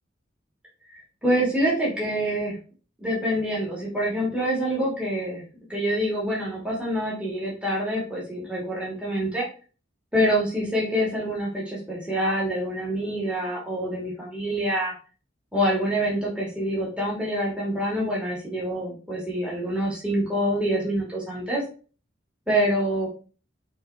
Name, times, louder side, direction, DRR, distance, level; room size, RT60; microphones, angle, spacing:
voice 1, 1.2-2.6 3.0-5.4 5.7-9.5 10.1-14.9 15.5-21.6 22.5-23.1, equal, 5° right, -6 dB, 2.6 m, -26 dB
6.8 x 3.9 x 3.7 m, 0.36 s
head